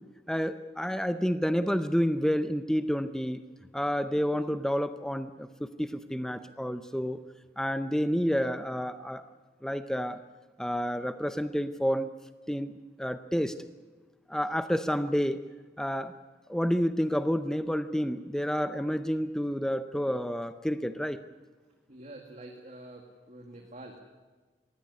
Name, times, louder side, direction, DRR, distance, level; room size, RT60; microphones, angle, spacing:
voice 1, 0.3-3.4 3.7-7.2 7.6-9.3 9.6-10.2 10.6-12.1 12.5-13.5 14.3-15.4 15.8-16.1 16.5-21.2, equal, 5° left, 11 dB, 0.6 m, -29 dB
voice 2, 21.9-24.0, right 1 dB, 40° right, 2 dB, 2.2 m, -47 dB
21.0 x 16.0 x 9.7 m, 1.4 s
head